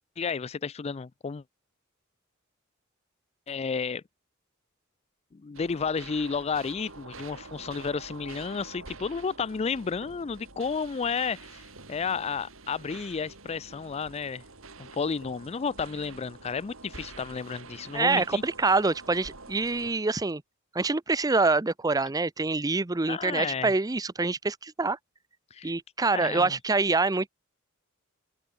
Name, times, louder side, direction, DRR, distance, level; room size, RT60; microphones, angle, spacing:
voice 1, 0.2-1.4 3.5-4.0 5.3-14.4 14.8-18.4 23.1-23.7 25.5-25.7 26.1-26.5, left 5 dB, 30° left, 0.4 m, -32 dB
sound 1, 5.5-19.9, right 3 dB, 75° right, 4.5 m, -47 dB
voice 2, 17.9-20.4 20.7-25.0 25.6-27.3, right 3 dB, 20° right, 0.6 m, -26 dB
open air
head